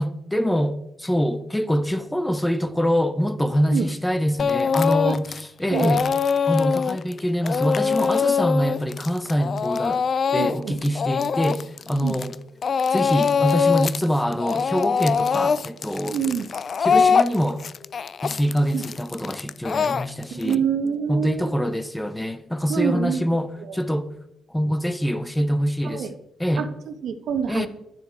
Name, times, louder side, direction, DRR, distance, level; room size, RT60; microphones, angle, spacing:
voice 1, 0.0-5.3 5.6-6.1 6.5-10.0 10.3-12.4 12.9-16.2 16.8-17.6 18.2-20.6 21.1-24.1 24.5-26.1 26.4-26.6 27.5-27.7, equal, 5° left, 0.8 m, -24 dB
Speech / Crying sobbing, 4.4-5.4 5.7-12.4 12.6-14.0 14.3-20.5, left 6 dB, 45° left, 0.4 m, -23 dB
voice 2, 10.3-10.8 12.0-12.2 16.0-16.5 18.7-18.8 20.3-21.6 22.7-23.2 23.6-23.8 25.8-26.1 26.6-27.7, right 7 dB, 70° right, 1.2 m, -26 dB
10.5 x 9.6 x 4.6 m
cardioid pair, 90°, 0 cm